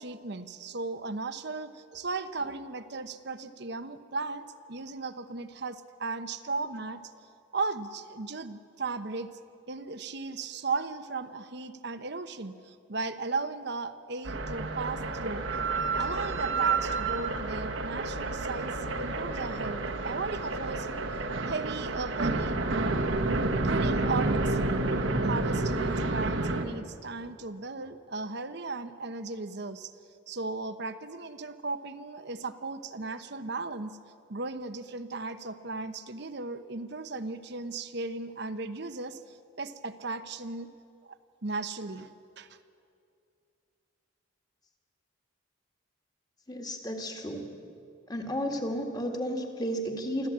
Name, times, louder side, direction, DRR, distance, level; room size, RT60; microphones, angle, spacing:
voice 1, 0.0-7.0 7.5-9.4 9.7-15.5 16.0-21.1 21.5-22.9 23.6-24.9 25.2-29.9 30.3-34.0 34.3-40.7 41.0-42.1 42.4-42.5, right 3 dB, 55° right, 11 dB, 0.9 m, -36 dB
sound 1, 14.2-26.6, right 3 dB, 75° right, 1.5 m, -29 dB
voice 2, 46.5-47.5 48.1-50.3, equal, 20° left, 3 dB, 2.0 m, -33 dB
25.0 x 14.5 x 8.7 m, 2.5 s
head